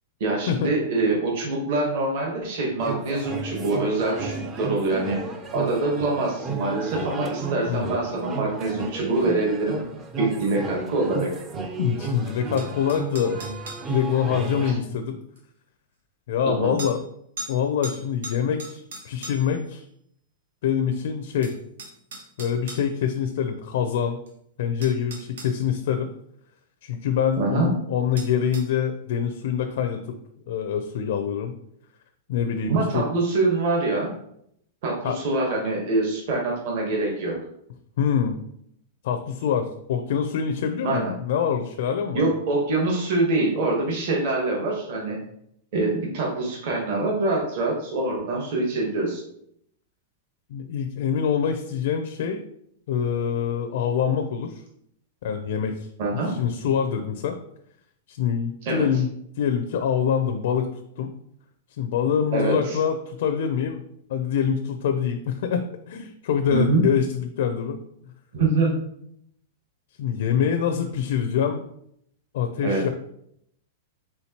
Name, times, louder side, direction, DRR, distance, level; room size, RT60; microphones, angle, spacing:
voice 1, 0.2-5.2 5.5-9.8 10.2-11.3 14.6-14.8 16.4-16.8 27.4-27.7 32.7-34.1 34.8-37.4 40.8-41.1 42.1-45.2 45.7-49.2 56.0-56.3 58.6-58.9 62.3-62.8 66.4-66.8 68.3-68.8 72.6-72.9, right 2 dB, 45° right, -2 dB, 1.1 m, -24 dB
sound 1, 2.8-14.7, right 4 dB, 15° right, 0.4 m, -33 dB
voice 2, 11.8-13.4 13.9-15.2 16.3-17.0 17.5-19.8 20.6-21.5 22.4-24.2 24.6-26.1 26.8-30.2 30.5-31.5 32.3-33.1 35.0-35.2 38.0-38.4 39.0-42.2 50.5-52.4 52.9-54.6 55.2-55.9 56.3-57.4 58.1-59.1 59.4-60.7 61.0-61.1 61.8-63.8 64.1-67.8 70.0-71.6 72.3-72.9, left 8 dB, 55° left, 5 dB, 0.4 m, -25 dB
sound 2, 12.6-13.9 15.4-15.5 16.8-17.0 17.4-17.6 17.8-19.6 21.0-21.1 21.4-22.9 24.3-24.4 24.8-25.5 28.2-28.7, right 2 dB, 90° right, 1.0 m, -38 dB
4.3 x 3.7 x 2.8 m, 0.71 s
supercardioid pair, 175°, 0 cm